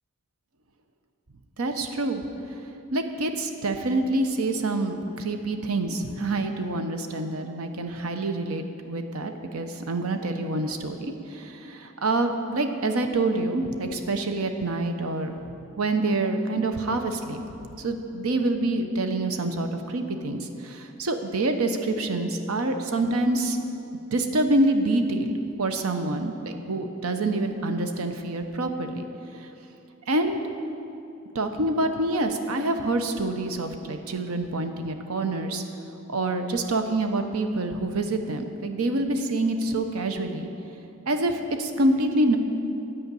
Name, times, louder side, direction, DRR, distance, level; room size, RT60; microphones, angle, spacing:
voice 1, 1.6-2.2 2.9-23.6 24.1-29.0 29.4-29.5 30.1-30.4 31.3-35.6 36.1-40.5 41.1-42.4, right 2 dB, 85° right, 6 dB, 0.8 m, -26 dB
11.0 x 5.0 x 8.3 m, 2.8 s
head